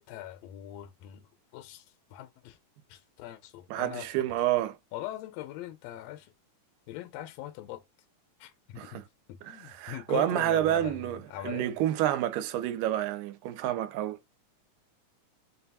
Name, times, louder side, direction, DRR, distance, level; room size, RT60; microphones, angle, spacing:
voice 1, 0.0-2.6 2.9-4.1 4.9-6.3 6.9-7.8 8.4-9.0 9.3-11.8, left 13 dB, 90° left, 1.5 m, -41 dB
voice 2, 3.7-4.8 8.8-9.0 9.4-14.2, right 12 dB, 85° right, 2.1 m, -29 dB
5.3 x 2.3 x 2.7 m
omnidirectional pair, 3.6 m